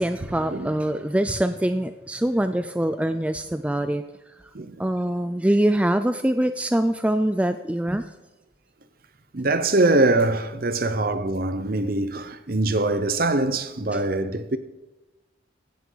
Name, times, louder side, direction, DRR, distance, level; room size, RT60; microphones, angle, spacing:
voice 1, 0.0-4.0 4.8-8.1, right 1 dB, 5° right, 0.3 m, -24 dB
voice 2, 4.5-4.9 9.3-14.6, right 2 dB, 50° right, 0.8 m, -23 dB
16.5 x 10.5 x 4.0 m
head